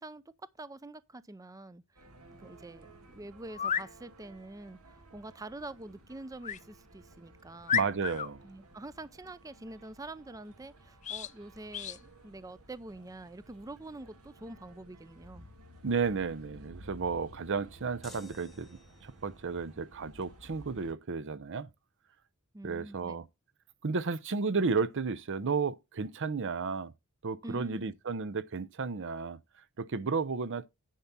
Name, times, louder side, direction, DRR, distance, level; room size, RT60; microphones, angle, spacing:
voice 1, 0.0-2.1 2.4-7.8 8.4-15.5 22.5-23.2 27.4-27.9, right 2 dB, 15° right, 0.5 m, -46 dB
sound 1, 2.0-20.9, right 1 dB, 85° right, 1.9 m, -55 dB
sound 2, 2.6-2.7 3.5-3.9 6.4-6.6 7.2-7.3 7.7-8.3 11.0-11.3 11.7-12.0, left 8 dB, 35° left, 0.4 m, -32 dB
voice 2, 7.7-8.5 15.8-21.7 22.6-23.3 23.8-26.9 27.2-29.4 29.8-30.7, right 4 dB, 60° right, 0.7 m, -33 dB
sound 3, 18.0-19.3, left 2 dB, ahead, 1.1 m, -54 dB
10.5 x 5.9 x 4.0 m
head